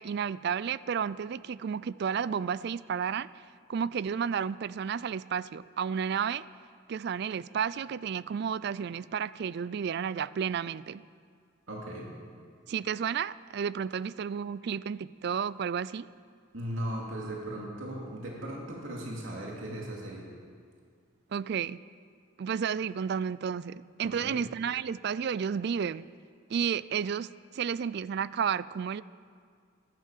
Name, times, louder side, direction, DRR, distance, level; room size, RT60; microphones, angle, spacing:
voice 1, 0.0-3.3 3.7-6.4 6.9-11.0 12.7-16.1 21.3-21.8 22.4-26.1 26.5-29.0, right 7 dB, 55° right, 18 dB, 0.3 m, -32 dB
voice 2, 11.7-12.1 16.5-20.3 24.0-24.4, right 1 dB, 85° right, -2 dB, 2.5 m, -37 dB
14.0 x 12.0 x 7.3 m, 2.1 s
head